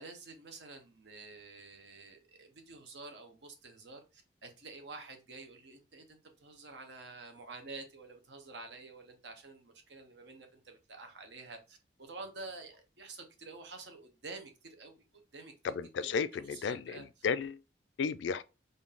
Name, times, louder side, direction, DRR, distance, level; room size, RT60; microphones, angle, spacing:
voice 1, 0.0-15.0 15.3-15.5 16.0-17.1, right 3 dB, 70° right, 0.9 m, -49 dB
voice 2, 15.6-17.6 18.0-18.4, left 6 dB, 80° left, 0.4 m, -34 dB
3.8 x 2.7 x 3.6 m
head